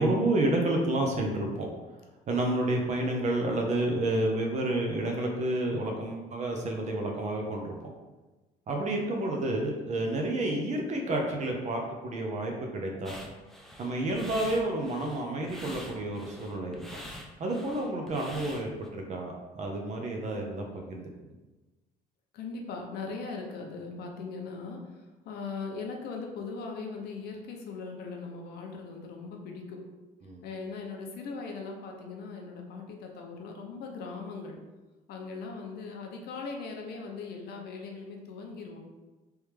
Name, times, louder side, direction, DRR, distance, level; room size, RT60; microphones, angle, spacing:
voice 1, 0.0-1.7 2.3-7.7 8.7-13.2 13.8-17.0 17.4-21.1 30.2-30.4, right 1 dB, 45° right, 1 dB, 0.7 m, -30 dB
sound 1, 13.0-18.9, equal, ahead, 0.5 m, -45 dB
voice 2, 22.3-24.8 25.2-29.8 30.4-34.6 35.1-38.8, left 4 dB, 70° left, 1 dB, 0.8 m, -39 dB
3.4 x 3.1 x 3.2 m, 1.2 s
cardioid pair, 110°, 17 cm